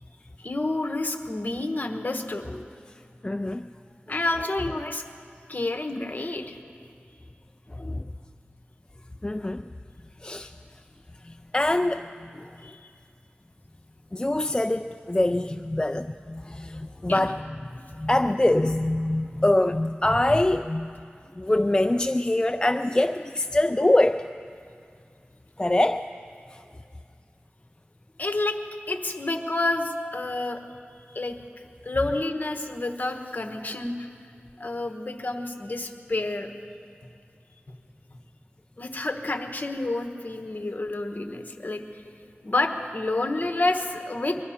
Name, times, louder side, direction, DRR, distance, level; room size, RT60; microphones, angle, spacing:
voice 1, 0.4-2.5 4.1-5.0 5.5-6.6 12.6-12.9 17.1-17.3 28.2-28.6 28.9-30.6 31.1-31.4 31.8-34.1 34.6-36.5 37.7-37.8 38.8-42.0 42.4-44.4, left 2 dB, 45° left, 5 dB, 1.1 m, -29 dB
voice 2, 3.2-3.7 7.7-8.1 9.2-9.6 10.2-10.5 11.2-12.5 14.1-21.0 21.4-24.3 25.6-26.1 26.5-26.6, left 1 dB, 20° left, 8 dB, 0.3 m, -24 dB
21.5 x 11.5 x 5.7 m, 2.4 s
wide cardioid pair, 65°, 4 cm